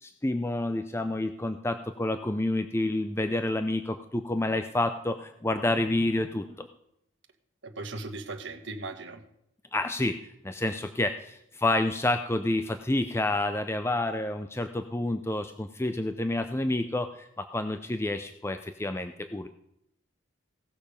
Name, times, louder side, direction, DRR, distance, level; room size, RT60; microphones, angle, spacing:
voice 1, 0.0-6.7 9.7-10.2 10.4-19.5, left 2 dB, 10° left, 8 dB, 0.5 m, -29 dB
voice 2, 7.6-9.2, right 3 dB, 60° right, 6 dB, 1.4 m, -38 dB
17.0 x 6.8 x 5.2 m, 0.78 s
head